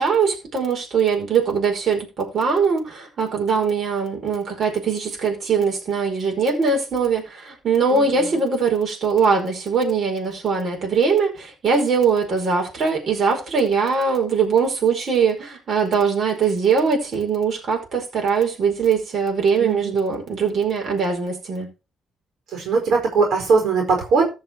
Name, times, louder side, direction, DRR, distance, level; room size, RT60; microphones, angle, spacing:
voice 1, 0.0-21.7, right 5 dB, 55° right, 5.0 m, -21 dB
voice 2, 7.9-8.3 19.6-19.9 22.5-24.3, right 4 dB, 70° right, 4.7 m, -20 dB
14.5 x 5.9 x 4.6 m
cardioid pair, 90°, 0 cm